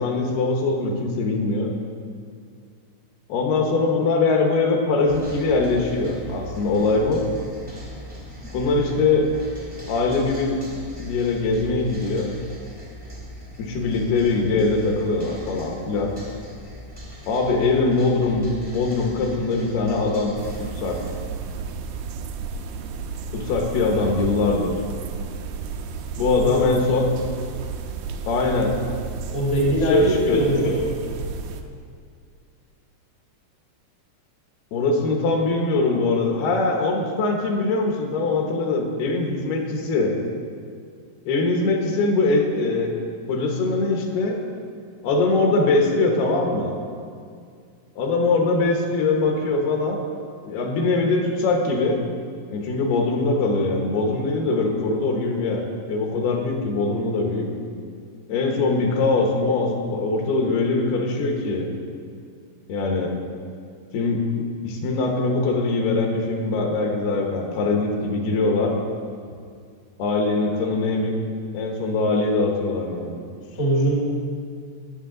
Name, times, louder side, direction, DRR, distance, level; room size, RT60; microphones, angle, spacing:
voice 1, 0.0-1.7 3.3-7.2 8.5-9.3 9.9-10.6 11.0-12.3 13.6-16.1 17.3-20.3 20.6-21.0 23.3-24.7 26.2-27.1 28.3-28.8 29.7-30.4 34.7-40.2 41.3-42.9 43.3-44.4 45.0-46.8 48.0-50.0 50.4-52.0 52.5-57.5 58.3-61.7 62.7-63.1 63.9-68.8 70.0-71.1 71.5-73.3, left 3 dB, 75° left, 2 dB, 2.9 m, -22 dB
sound 1, 5.1-21.1, equal, 35° right, 0.5 m, -40 dB
sound 2, 20.4-31.6, right 5 dB, 85° right, 2.1 m, -33 dB
voice 2, 29.3-30.9 73.5-74.0, right 1 dB, 45° left, -3 dB, 0.9 m, -22 dB
18.5 x 7.0 x 3.8 m, 2.2 s
omnidirectional pair, 4.8 m